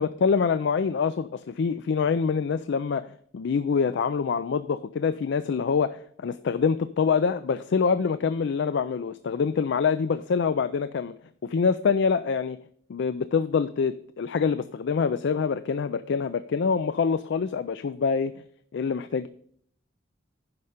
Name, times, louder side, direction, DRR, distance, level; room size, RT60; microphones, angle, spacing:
voice 1, 0.0-3.1 3.3-11.1 11.4-12.6 12.9-18.3 18.7-19.3, left 5 dB, 60° left, 13 dB, 0.4 m, -25 dB
10.5 x 5.7 x 5.0 m, 0.62 s
head